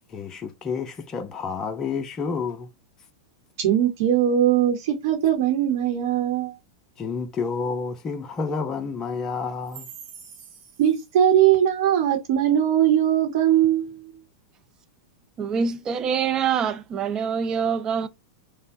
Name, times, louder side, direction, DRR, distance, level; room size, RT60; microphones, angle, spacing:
voice 1, 0.1-2.7 7.0-9.9, left 5 dB, 25° left, 0.6 m, -29 dB
voice 2, 3.6-6.5 10.8-14.1, right 10 dB, 60° right, 0.9 m, -20 dB
voice 3, 15.4-18.1, right 6 dB, 30° right, 0.4 m, -25 dB
5.1 x 2.0 x 2.6 m
hypercardioid pair, 105°, 2 cm